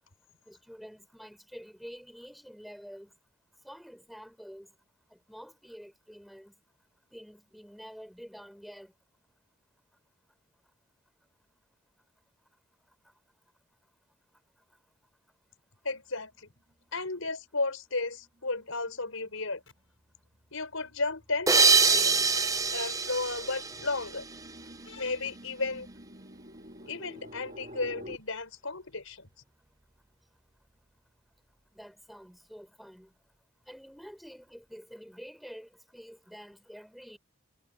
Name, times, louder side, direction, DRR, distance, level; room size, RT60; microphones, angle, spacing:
voice 1, 0.5-3.1 3.6-4.7 5.1-6.5 7.1-8.9 13.0-13.1 31.7-33.1 33.7-37.2, equal, ahead, 5.5 m, -48 dB
voice 2, 15.8-16.5 16.9-19.6 20.5-22.1 22.5-24.2 24.8-25.9 26.8-29.3, left 3 dB, 85° left, 5.3 m, -34 dB
sound 1, 18.5-18.8 19.2-28.2, equal, 40° right, 3.7 m, -50 dB
sound 2, 21.5-24.5, right 5 dB, 15° right, 0.6 m, -25 dB
head